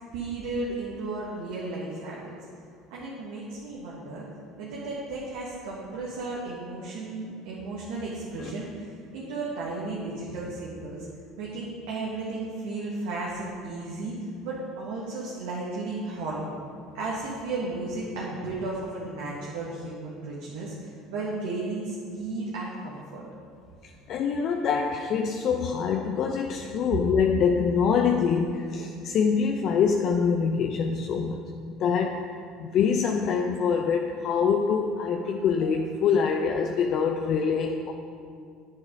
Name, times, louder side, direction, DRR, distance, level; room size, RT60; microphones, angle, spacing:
voice 1, 0.1-2.3 2.9-4.3 4.6-11.1 11.4-14.1 14.4-16.5 16.9-23.2, right 2 dB, 75° right, -5 dB, 1.7 m, -34 dB
voice 2, 24.1-31.4 31.8-32.3 32.6-37.9, left 6 dB, 55° left, 3 dB, 0.6 m, -25 dB
9.5 x 7.7 x 5.2 m, 2.3 s
hypercardioid pair, 75°, 0 cm